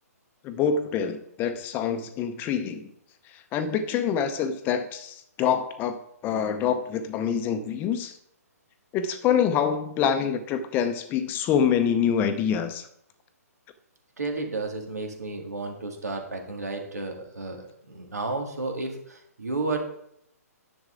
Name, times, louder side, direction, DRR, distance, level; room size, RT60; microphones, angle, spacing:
voice 1, 0.4-2.9 3.3-6.0 6.2-8.1 8.9-12.9, left 8 dB, 25° left, 9 dB, 0.8 m, -26 dB
voice 2, 14.2-19.8, right 3 dB, 80° right, 3 dB, 2.2 m, -32 dB
10.5 x 7.1 x 3.8 m, 0.73 s
figure-of-eight pair, 130°, 9 cm